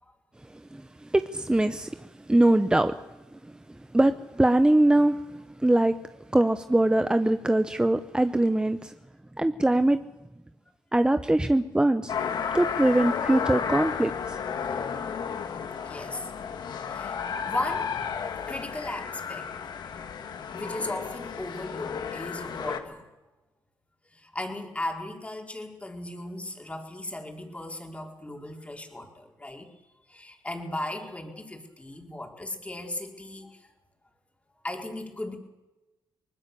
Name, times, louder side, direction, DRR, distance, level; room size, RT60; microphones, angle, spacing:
voice 1, 0.5-2.9 3.4-3.5 3.9-6.0 6.3-8.9 9.4-10.0 10.9-12.1 12.5-14.4, right 1 dB, 10° right, 10 dB, 1.0 m, -23 dB
sound 1, 12.1-22.8, left 6 dB, 65° left, 2.2 m, -33 dB
voice 2, 15.8-16.5 16.9-17.9 18.5-19.5 20.5-23.1 24.1-29.7 30.1-33.7 34.6-35.4, left 1 dB, 15° left, 2 dB, 4.5 m, -36 dB
24.0 x 19.5 x 7.0 m, 1.1 s
cardioid pair, 75°, 8 cm